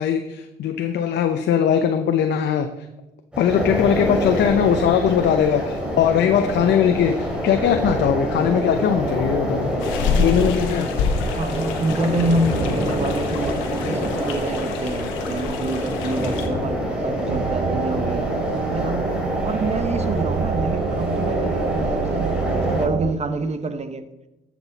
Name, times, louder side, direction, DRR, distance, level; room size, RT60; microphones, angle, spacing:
voice 1, 0.0-2.7 3.4-9.7 10.2-10.9, left 8 dB, 65° left, 0.7 m, -20 dB
sound 1, 3.3-22.9, equal, 5° right, 3.3 m, -26 dB
sound 2, 9.8-16.5, left 5 dB, 85° left, 1.3 m, -28 dB
voice 2, 10.1-10.7 11.3-18.3 18.7-24.1, right 2 dB, 35° right, 1.0 m, -27 dB
sound 3, 17.3-23.1, right 8 dB, 80° right, 0.6 m, -27 dB
13.0 x 6.2 x 4.0 m
supercardioid pair, 70°, 19 cm